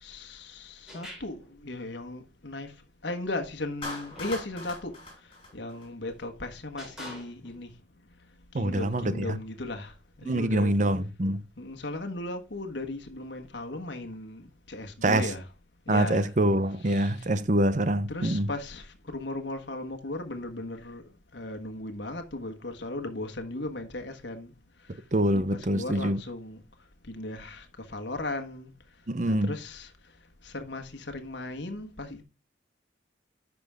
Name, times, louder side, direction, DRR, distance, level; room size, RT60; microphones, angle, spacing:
voice 1, 0.0-2.7 3.0-4.9 5.5-7.7 8.5-10.8 11.6-15.5 15.9-16.3 16.8-17.3 18.1-21.0 21.3-24.5 25.3-26.6 27.1-28.7 29.3-29.9 30.4-32.2, left 2 dB, 70° left, 1.4 m, -37 dB
sound 1, 0.9-1.5 3.8-4.4 5.5-5.7 6.8-7.6, left 1 dB, 5° right, 3.9 m, -45 dB
Clapping, 3.8-6.2, left 2 dB, 30° left, 3.9 m, -40 dB
voice 2, 8.5-9.4 10.3-11.4 15.0-15.3 15.9-18.5 25.1-26.2 29.1-29.5, right 1 dB, 40° right, 0.7 m, -25 dB
10.5 x 6.1 x 3.5 m
head